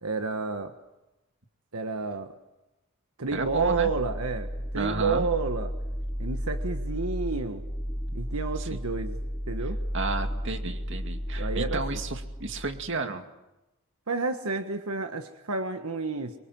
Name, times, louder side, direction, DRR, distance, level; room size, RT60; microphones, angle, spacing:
voice 1, 0.0-0.7 1.7-2.3 3.2-5.7 6.2-7.6 8.1-9.1 9.5-9.8 11.3-12.0 14.1-16.3, right 4 dB, 85° right, 7 dB, 1.5 m, -30 dB
sound 1, 3.3-12.9, equal, 15° left, 3.1 m, -33 dB
voice 2, 3.3-3.9 4.8-5.3 8.6-8.8 9.9-13.2, right 3 dB, 55° right, 6 dB, 2.3 m, -32 dB
26.0 x 24.0 x 7.7 m, 0.97 s
head